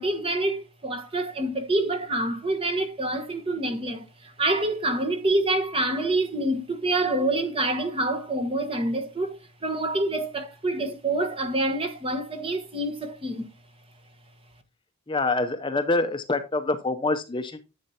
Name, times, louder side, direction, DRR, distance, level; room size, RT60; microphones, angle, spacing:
voice 1, 0.0-9.4 9.6-13.5, right 2 dB, 25° right, 1.3 m, -27 dB
voice 2, 15.1-17.6, left 2 dB, 20° left, 0.6 m, -26 dB
10.5 x 7.9 x 2.8 m
head